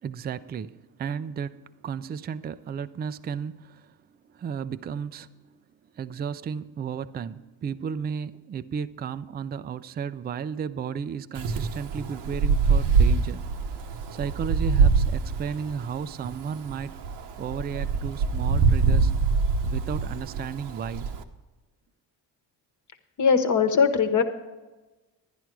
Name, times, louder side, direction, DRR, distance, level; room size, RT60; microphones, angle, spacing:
voice 1, 0.0-3.9 4.3-5.3 5.9-13.4 14.1-19.2 19.6-21.1, right 7 dB, 25° right, 0.4 m, -34 dB
Wind, 11.3-21.2, right 5 dB, 80° right, 1.1 m, -24 dB
voice 2, 23.2-24.2, left 6 dB, 45° left, 1.2 m, -20 dB
11.0 x 10.5 x 4.7 m
cardioid pair, 105°, 40 cm